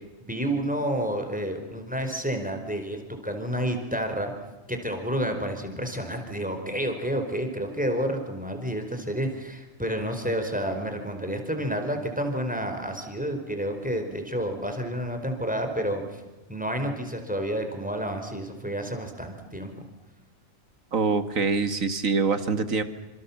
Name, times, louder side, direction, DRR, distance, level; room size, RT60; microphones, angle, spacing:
voice 1, 0.2-4.3 4.7-16.2 16.5-19.7, equal, 5° right, 5 dB, 4.6 m, -30 dB
voice 2, 20.9-22.8, right 4 dB, 75° right, 10 dB, 2.3 m, -24 dB
28.5 x 27.0 x 7.3 m, 1.1 s
omnidirectional pair, 1.4 m